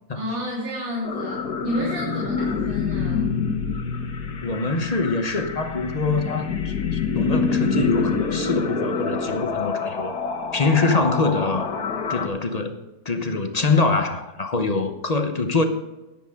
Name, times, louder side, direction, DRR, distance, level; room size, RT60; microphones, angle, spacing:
voice 1, 0.1-3.3, equal, 90° right, -6 dB, 4.0 m, -30 dB
sound 1, 1.0-12.3, left 5 dB, 60° left, 1.7 m, -26 dB
voice 2, 4.4-10.2 10.5-11.7 12.1-15.6, left 3 dB, 35° left, 6 dB, 0.7 m, -24 dB
14.0 x 10.5 x 3.8 m, 1.1 s
omnidirectional pair, 2.0 m